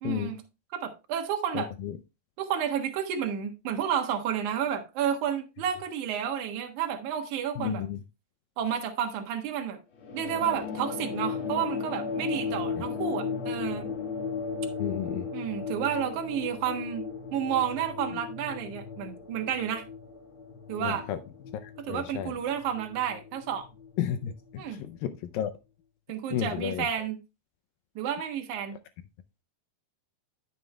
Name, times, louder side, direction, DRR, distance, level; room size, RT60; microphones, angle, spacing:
voice 1, 0.0-0.4 0.7-1.7 2.4-7.8 8.6-9.8 10.1-13.9 15.3-17.1 17.3-19.8 20.7-21.1 21.8-23.7 24.6-24.8 26.1-27.2 28.0-28.8, right 9 dB, 60° right, 2.4 m, -31 dB
voice 2, 7.6-7.9 14.8-15.3 20.8-21.2 21.9-22.3 24.0-24.3 24.8-25.5 26.3-26.9, left 10 dB, 80° left, 2.1 m, -31 dB
sound 1, 10.0-24.9, left 5 dB, 50° left, 1.7 m, -36 dB
12.5 x 7.3 x 2.2 m
omnidirectional pair, 4.5 m